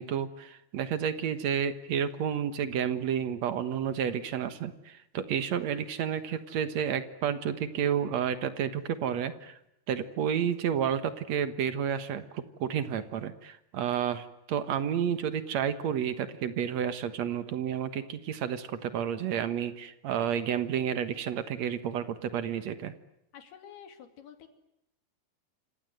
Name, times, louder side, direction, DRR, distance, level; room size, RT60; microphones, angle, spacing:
voice 1, 0.0-9.6 9.9-22.9, right 8 dB, 65° right, 11 dB, 1.8 m, -31 dB
voice 2, 23.3-24.5, left 8 dB, 65° left, 7 dB, 4.4 m, -49 dB
29.0 x 26.0 x 7.9 m, 0.83 s
omnidirectional pair, 4.9 m